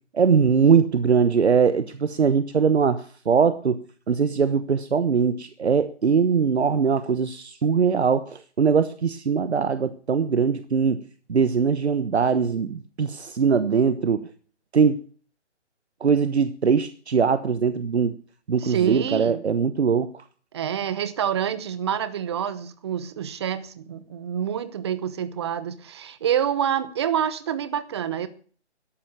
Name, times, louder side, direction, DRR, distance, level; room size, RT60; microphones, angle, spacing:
voice 1, 0.1-11.0 11.3-14.2 14.7-15.0 16.0-18.1 18.5-20.1, right 6 dB, 65° right, 1.1 m, -21 dB
voice 2, 18.6-19.4 20.5-28.3, right 9 dB, 25° right, 1.0 m, -27 dB
13.0 x 11.5 x 7.2 m
figure-of-eight pair, 150°, 35 cm